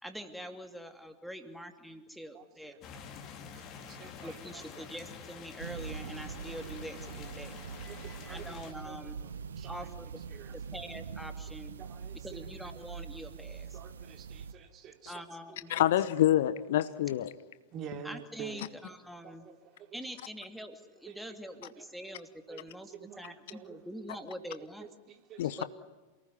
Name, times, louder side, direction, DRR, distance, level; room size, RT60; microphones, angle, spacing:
voice 1, 0.0-3.0 4.2-7.6 8.2-9.2 9.7-10.2 10.5-11.7 12.2-13.8 15.1-15.7 18.0-19.5 19.9-24.9 25.6-25.7, equal, ahead, 2.7 m, -45 dB
voice 2, 2.3-3.1 3.5-4.9 7.6-8.5 8.8-9.9 10.3-10.5 11.8-12.4 12.6-12.7 13.7-15.2 15.5-15.8 16.7-16.8 17.7-18.7 19.2-20.0 21.0-21.4 21.8-21.9 22.5-22.6 22.9-23.8 24.8-25.6, right 8 dB, 35° right, 3.1 m, -49 dB
sound 1, 2.8-8.7, left 6 dB, 35° left, 3.2 m, -48 dB
sound 2, 5.6-14.5, right 6 dB, 65° right, 1.3 m, -43 dB
voice 3, 15.7-17.3 25.4-25.6, left 12 dB, 55° left, 1.0 m, -26 dB
28.0 x 19.0 x 9.7 m
figure-of-eight pair, 90°, 0 cm